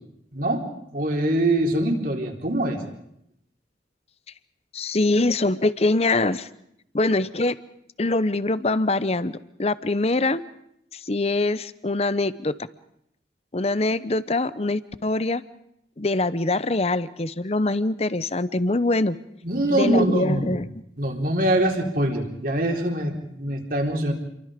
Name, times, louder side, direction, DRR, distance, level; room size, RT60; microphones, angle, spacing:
voice 1, 0.3-0.6 0.9-2.8 19.4-20.5 21.0-24.1, right 1 dB, 50° right, 1 dB, 4.1 m, -23 dB
voice 2, 4.7-6.5 6.9-7.6 8.0-10.4 10.9-12.5 13.5-15.4 16.0-19.2 19.7-20.7, left 2 dB, 35° left, 15 dB, 0.8 m, -23 dB
30.0 x 24.0 x 5.2 m, 0.76 s
head